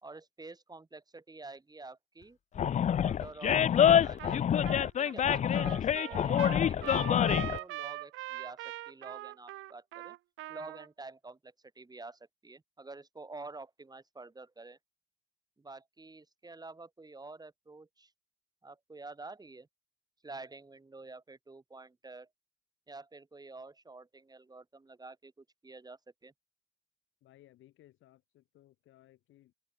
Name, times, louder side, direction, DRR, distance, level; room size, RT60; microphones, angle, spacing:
voice 1, 0.0-2.4 3.0-4.6 5.0-10.2 10.5-14.8 15.6-18.1 18.6-19.7 20.2-22.3 22.9-26.3, right 3 dB, 20° right, 2.2 m, -49 dB
Animal, 2.5-7.6, left 9 dB, 35° left, 0.4 m, -26 dB
Trumpet, 4.2-4.4 4.6-10.9, right 17 dB, 85° right, 0.6 m, -42 dB
voice 2, 27.2-29.5, left 14 dB, 85° left, 4.8 m, -61 dB
cardioid pair, 90°, 20 cm